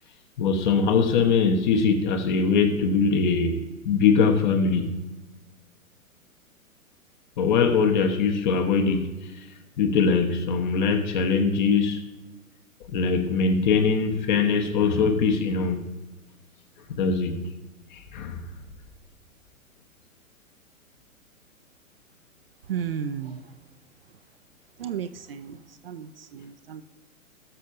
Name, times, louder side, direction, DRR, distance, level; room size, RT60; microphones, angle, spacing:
voice 1, 0.4-3.6 3.8-4.9 7.4-9.1 9.8-12.0 12.9-15.8 16.9-17.4 17.9-18.4, left 5 dB, 35° left, 1.1 m, -22 dB
voice 2, 22.7-23.4 24.8-25.6 25.8-26.8, right 8 dB, 45° right, 0.6 m, -33 dB
19.0 x 6.4 x 2.7 m
figure-of-eight pair, 115°, 42 cm